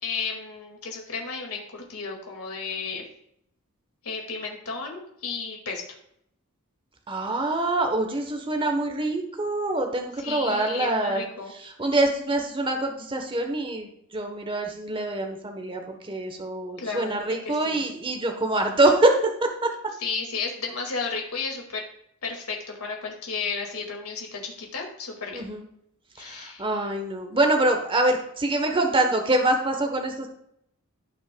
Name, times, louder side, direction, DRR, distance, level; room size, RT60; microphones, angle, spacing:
voice 1, 0.0-3.0 4.0-5.8 10.2-11.5 16.8-17.8 20.0-21.8 22.2-25.4 26.2-26.6, left 4 dB, 75° left, 1 dB, 2.0 m, -33 dB
voice 2, 7.1-11.2 11.8-19.7 25.3-25.6 26.2-30.3, right 2 dB, 25° right, 3 dB, 1.0 m, -25 dB
16.0 x 6.2 x 2.2 m, 0.73 s
head